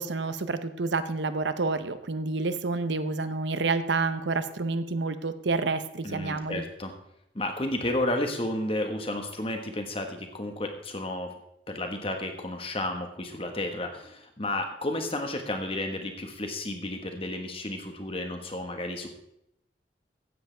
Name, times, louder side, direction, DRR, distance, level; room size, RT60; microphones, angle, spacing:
voice 1, 0.0-6.6, right 3 dB, 70° right, 11 dB, 0.8 m, -29 dB
voice 2, 6.0-6.9 7.3-11.3 11.7-19.1, left 1 dB, 30° left, 5 dB, 1.4 m, -32 dB
15.0 x 10.5 x 3.4 m, 0.80 s
head